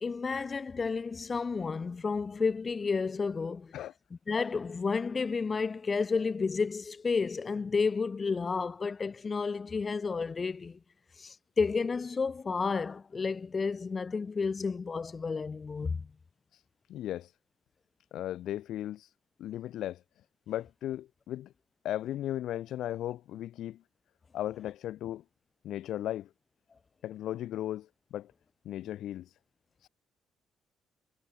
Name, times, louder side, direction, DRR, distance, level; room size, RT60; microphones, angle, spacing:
voice 1, 0.0-3.7 4.3-10.8 11.2-16.1, left 4 dB, 25° left, 0.7 m, -31 dB
voice 2, 16.9-17.3 18.1-19.1 19.4-20.0 20.5-21.5 21.8-23.8 24.3-25.2 25.6-26.3 27.0-28.3 28.6-29.3 29.8-29.9, left 12 dB, 70° left, 1.3 m, -36 dB
cardioid pair, 155°, 0 cm